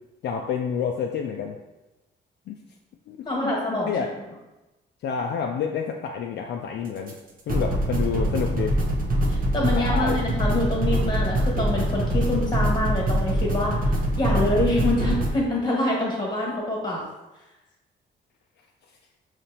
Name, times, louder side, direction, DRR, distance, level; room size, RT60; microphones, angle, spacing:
voice 1, 0.2-1.5 2.5-2.6 3.1-3.2 3.4-3.6 3.8-4.1 5.0-7.1 7.5-8.7 9.6-10.2, left 7 dB, 60° left, 2 dB, 0.4 m, -28 dB
voice 2, 3.2-3.9 9.3-17.0, left 1 dB, 20° left, -3 dB, 1.5 m, -26 dB
sound 1, 7.1-7.2 7.5-15.3, right 1 dB, 45° right, 0.7 m, -24 dB
5.1 x 2.8 x 2.8 m, 1.0 s
cardioid pair, 90°, 20 cm